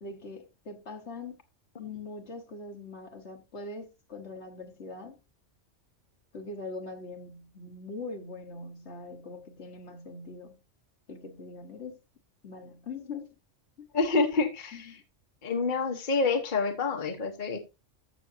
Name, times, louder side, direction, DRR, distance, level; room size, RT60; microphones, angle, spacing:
voice 1, 0.0-1.4 1.8-5.2 6.3-10.6 11.1-12.0 12.4-13.4 13.8-13.9 14.7-15.0, left 3 dB, 65° left, 1.6 m, -42 dB
voice 2, 13.9-15.0 15.4-17.6, left 4 dB, 45° left, 1.3 m, -27 dB
13.5 x 6.3 x 2.7 m
omnidirectional pair, 1.2 m